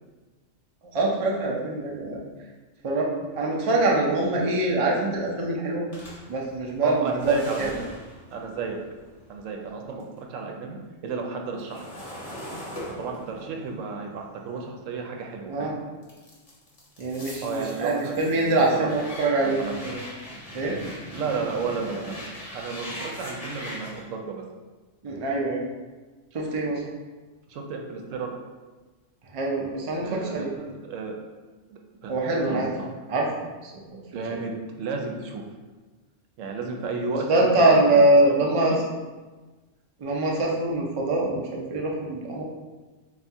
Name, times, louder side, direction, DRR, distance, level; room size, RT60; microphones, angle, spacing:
voice 1, 0.9-2.2 2.8-5.8 6.3-7.7 15.5-15.7 17.0-20.0 20.5-20.8 25.0-25.6 26.3-26.8 29.3-30.5 32.1-32.7 33.1-33.3 33.6-33.7 37.1-38.7 40.0-42.4, right 2 dB, 40° right, -2 dB, 0.5 m, -23 dB
sound 1, 5.9-10.2 10.5-15.5 16.0-24.0, equal, 30° left, 0.9 m, -41 dB
voice 2, 6.8-7.9 8.3-8.8 9.3-10.8 11.0-11.9 13.0-15.8 17.4-18.9 19.4-19.8 21.1-22.2 22.5-24.4 27.5-28.3 30.0-31.2 31.7-32.1 32.4-32.9 34.1-34.5 34.8-35.4 36.4-38.8, right 4 dB, 90° right, 2 dB, 1.0 m, -33 dB
4.2 x 2.4 x 3.5 m, 1.3 s
omnidirectional pair, 1.3 m